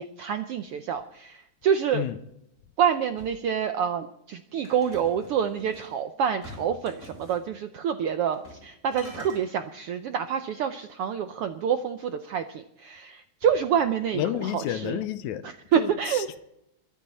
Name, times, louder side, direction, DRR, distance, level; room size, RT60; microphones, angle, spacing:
voice 1, 0.0-2.1 2.8-15.0 15.4-16.3, right 8 dB, 75° right, 1.3 m, -27 dB
sound 1, 4.6-5.9 6.4-7.4 8.3-8.7 8.9-9.4, left 1 dB, 30° left, 7.2 m, -45 dB
voice 2, 14.1-15.4 15.8-16.4, left 11 dB, 80° left, 2.1 m, -30 dB
23.0 x 10.5 x 4.2 m
omnidirectional pair, 3.4 m